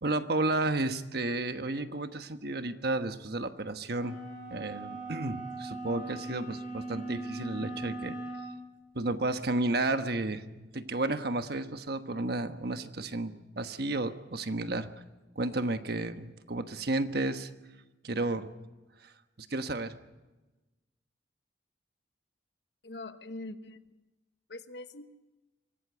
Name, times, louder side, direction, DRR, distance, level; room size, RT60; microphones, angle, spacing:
voice 1, 0.0-4.2 4.5-8.2 8.9-14.9 15.3-17.5 18.0-18.5 19.0-20.0, right 2 dB, 60° right, 9 dB, 1.2 m, -32 dB
sound 1, 3.9-8.5, right 2 dB, 40° left, 7.4 m, -40 dB
voice 2, 22.8-23.9 24.5-25.1, left 2 dB, 65° left, 10 dB, 1.1 m, -43 dB
24.5 x 17.0 x 8.0 m, 1.1 s
head